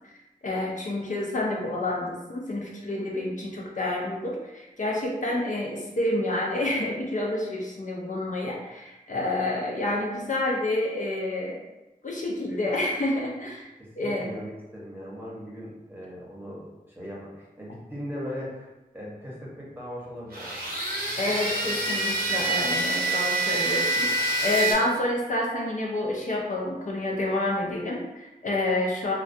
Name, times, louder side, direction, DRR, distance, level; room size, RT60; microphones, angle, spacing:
voice 1, 0.4-11.6 12.0-13.7 14.0-14.3 21.2-29.1, left 2 dB, 55° left, -2 dB, 0.5 m, -28 dB
voice 2, 13.8-20.7, equal, 15° right, -6 dB, 0.8 m, -39 dB
sound 1, 20.3-24.7, right 2 dB, 90° right, 0.8 m, -26 dB
2.3 x 2.2 x 2.6 m, 1.0 s
wide cardioid pair, 75°, 15 cm